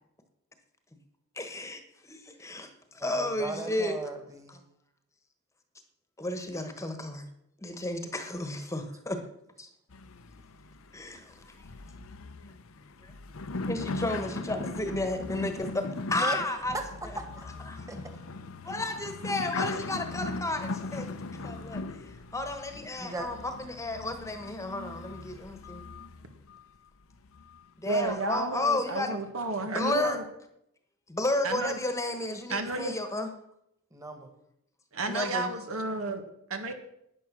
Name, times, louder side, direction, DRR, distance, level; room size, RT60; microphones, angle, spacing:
voice 1, 1.4-2.7 2.9-4.0 4.5-4.6 6.2-7.2 7.6-9.2 9.6-9.7 10.9-11.5 13.0-13.1 13.7-16.7 17.7-17.9 18.6-25.8 27.8-29.2 29.7-30.2 31.1-33.3 35.1-35.5, left 2 dB, 15° left, 7 dB, 1.2 m, -33 dB
voice 2, 3.0-4.5 16.2-16.4 16.7-16.8 17.2-17.5 17.9-18.0 22.7-23.3 33.9-34.3, right 2 dB, 15° right, 6 dB, 1.8 m, -37 dB
sound 1, 9.9-26.6 27.1-27.7, left 3 dB, 75° left, 0.8 m, -39 dB
voice 3, 27.9-30.2 31.4-31.8 32.5-33.0 34.9-36.2 36.5-36.7, right 2 dB, 80° right, 6 dB, 1.7 m, -31 dB
12.0 x 9.7 x 6.2 m, 0.78 s
head